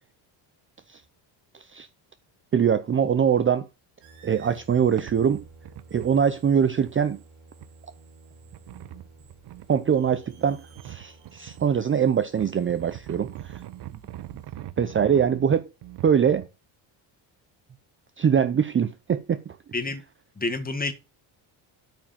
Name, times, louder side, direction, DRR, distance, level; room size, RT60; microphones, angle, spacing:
voice 1, 1.5-1.9 2.5-3.7 4.2-5.4 5.9-7.2 9.7-13.6 14.8-15.7 16.0-16.5 18.2-19.6, right 7 dB, 25° right, 0.6 m, -23 dB
sound 1, 4.0-14.5, right 4 dB, 90° right, 3.3 m, -52 dB
sound 2, 4.5-4.6 5.0-6.2 6.6-7.0 7.6-7.7 8.5-9.8 10.7-11.7 12.2-16.5, right 13 dB, 55° right, 0.8 m, -41 dB
voice 2, 20.4-20.9, left 3 dB, 20° left, 1.8 m, -28 dB
9.1 x 4.8 x 7.2 m
cardioid pair, 110°, 49 cm